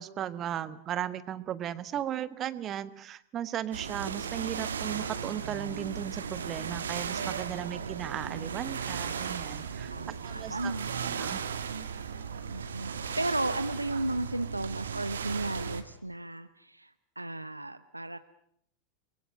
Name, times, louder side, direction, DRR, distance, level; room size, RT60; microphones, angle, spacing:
voice 1, 0.0-9.9 10.2-10.7 11.2-11.4, right 10 dB, 30° right, 15 dB, 1.4 m, -36 dB
sound 1, 3.7-15.8, right 6 dB, 65° right, 2.2 m, -36 dB
voice 2, 9.9-11.3 12.5-18.2, right 2 dB, 85° right, 12 dB, 0.9 m, -34 dB
29.5 x 22.5 x 6.4 m, 0.67 s
figure-of-eight pair, 90°, 0 cm